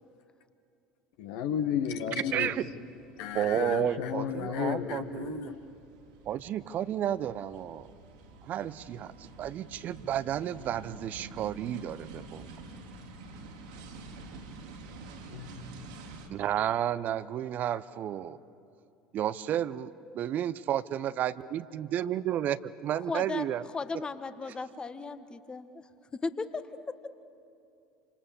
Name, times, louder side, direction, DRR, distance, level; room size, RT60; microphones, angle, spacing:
voice 1, 1.2-2.5 3.2-5.6 15.3-15.5, left 8 dB, 65° left, 7 dB, 1.7 m, -33 dB
voice 2, 2.3-2.6 3.3-5.5 6.3-7.9 8.4-9.1 9.4-12.5 16.3-18.4 19.1-23.6, right 11 dB, 45° right, 16 dB, 0.7 m, -32 dB
sound 1, 2.4-16.3, right 2 dB, 70° right, 3.0 m, -48 dB
voice 3, 22.9-23.5 23.7-25.9 26.2-26.6, left 4 dB, 25° left, 11 dB, 1.4 m, -36 dB
27.5 x 26.0 x 7.2 m, 2.7 s
figure-of-eight pair, 70°, 4 cm